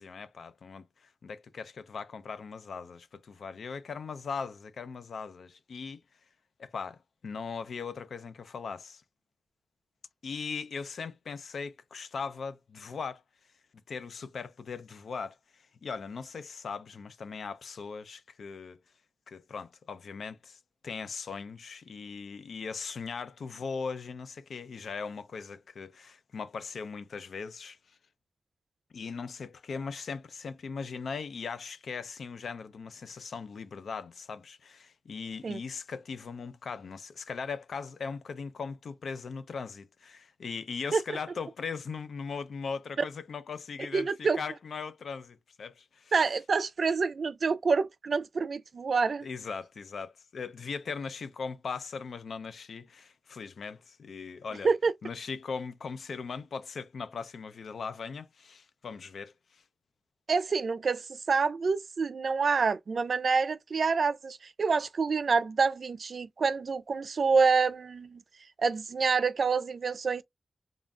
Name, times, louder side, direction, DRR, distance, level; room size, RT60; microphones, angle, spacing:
voice 1, 0.0-6.0 6.6-9.0 10.2-13.2 13.9-15.4 15.8-18.8 19.3-27.8 28.9-46.1 49.2-54.7 55.0-59.6, left 5 dB, 75° left, 0.5 m, -39 dB
voice 2, 43.9-44.4 46.1-49.3 54.6-54.9 60.3-68.2 68.6-70.2, right 4 dB, 55° right, 0.5 m, -27 dB
3.8 x 2.4 x 3.5 m
wide cardioid pair, 155°, 0 cm